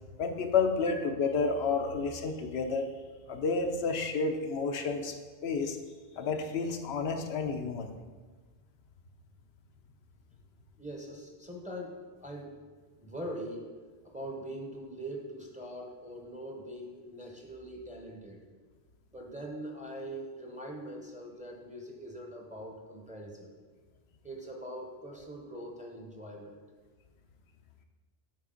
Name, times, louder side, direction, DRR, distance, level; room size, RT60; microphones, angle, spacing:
voice 1, 0.2-2.9 3.3-5.1 5.4-5.8 6.2-7.9, left 4 dB, 85° left, 5 dB, 0.9 m, -30 dB
voice 2, 10.8-12.6 13.0-13.7 14.0-18.5 19.1-23.5 24.2-26.6, right 1 dB, 10° right, 0 dB, 0.7 m, -42 dB
7.8 x 4.6 x 3.8 m, 1.4 s
omnidirectional pair, 1.0 m